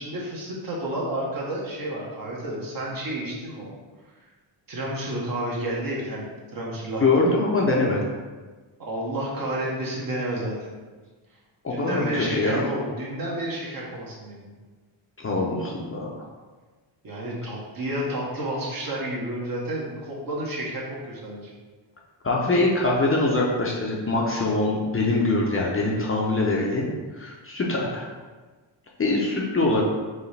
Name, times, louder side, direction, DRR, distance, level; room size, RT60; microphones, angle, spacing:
voice 1, 0.0-3.7 4.7-7.2 8.8-10.7 11.7-14.5 17.0-21.5, right 1 dB, 45° right, -4 dB, 1.2 m, -31 dB
voice 2, 7.0-8.0 11.6-12.6 15.2-16.3 22.2-26.9 27.2-28.1 29.0-29.8, left 2 dB, 25° left, -3 dB, 0.6 m, -23 dB
4.7 x 2.9 x 3.3 m, 1.3 s
cardioid pair, 110°, 48 cm